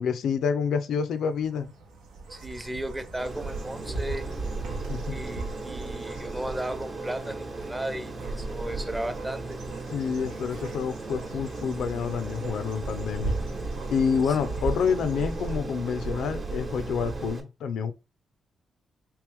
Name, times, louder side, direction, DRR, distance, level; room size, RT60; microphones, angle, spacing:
voice 1, 0.0-1.7 4.9-5.2 9.9-13.4 13.9-17.9, left 6 dB, 75° left, 0.4 m, -28 dB
sound 1, 1.2-17.3, right 3 dB, 90° right, 0.8 m, -36 dB
voice 2, 2.3-4.2 5.1-9.6 14.3-14.4, right 1 dB, 20° right, 0.7 m, -35 dB
Aircraft, 3.2-17.4, right 3 dB, 45° right, 1.1 m, -38 dB
3.1 x 2.8 x 3.4 m
hypercardioid pair, 40°, 0 cm